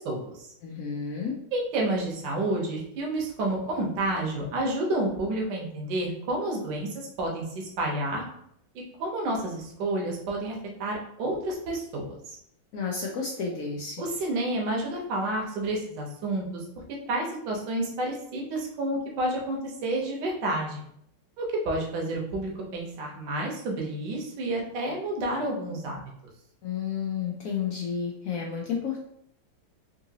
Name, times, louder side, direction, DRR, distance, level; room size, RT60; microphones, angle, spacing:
voice 1, 0.0-0.5 1.5-8.2 9.0-10.5 10.8-12.4 14.0-16.4 17.1-20.8 21.4-26.0, right 1 dB, 70° right, 0 dB, 1.4 m, -30 dB
voice 2, 0.6-1.4 12.7-14.0 26.6-29.1, left 6 dB, 80° left, -1 dB, 0.7 m, -31 dB
3.8 x 2.6 x 2.7 m, 0.71 s
omnidirectional pair, 2.0 m